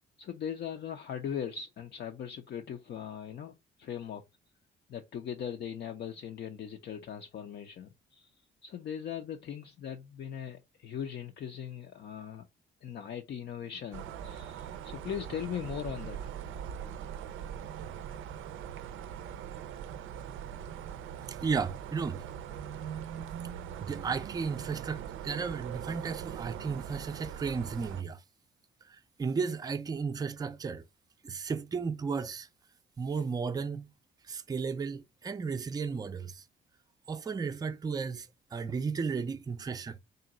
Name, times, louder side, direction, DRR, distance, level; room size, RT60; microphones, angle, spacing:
voice 1, 0.2-4.2 4.9-8.3 8.6-12.5 12.8-16.3, left 8 dB, 55° left, 0.5 m, -39 dB
sound 1, 13.9-28.0, right 9 dB, 85° right, 0.5 m, -41 dB
voice 2, 21.3-22.2 23.8-28.2 28.9-30.8 31.2-32.5 33.0-33.9 34.3-36.4 37.1-40.0, right 5 dB, 20° right, 0.4 m, -34 dB
3.8 x 2.2 x 3.8 m
cardioid pair, 90°, 20 cm